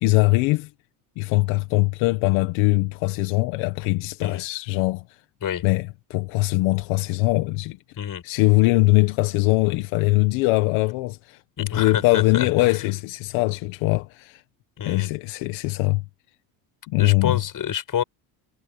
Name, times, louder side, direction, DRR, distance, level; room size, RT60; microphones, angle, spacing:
voice 1, 0.0-0.7 1.2-5.0 5.6-7.8 8.2-14.4 14.8-16.0 16.9-17.4, left 21 dB, 85° left, 1.7 m, -21 dB
voice 2, 11.6-12.8 14.8-15.1 17.0-18.0, left 9 dB, 45° left, 7.4 m, -28 dB
supercardioid pair, 100°, 46 cm